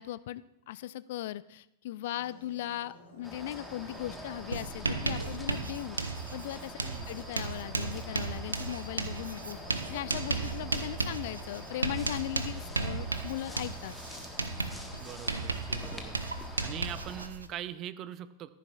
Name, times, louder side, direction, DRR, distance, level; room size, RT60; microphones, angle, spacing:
voice 1, 0.0-6.0 6.3-9.6 9.9-14.0, left 14 dB, 55° left, 17 dB, 0.3 m, -38 dB
sound 1, 2.1-15.5, right 1 dB, 75° left, 3.8 m, -54 dB
sound 2, 3.2-17.3, left 1 dB, 5° left, 1.4 m, -46 dB
Writing, 3.9-4.1 4.3-17.5, right 3 dB, 80° right, 0.6 m, -35 dB
voice 2, 6.8-7.1 15.0-16.2 16.6-18.5, right 11 dB, 35° right, 14 dB, 0.5 m, -42 dB
13.5 x 11.0 x 2.4 m, 0.84 s
figure-of-eight pair, 90°, 0 cm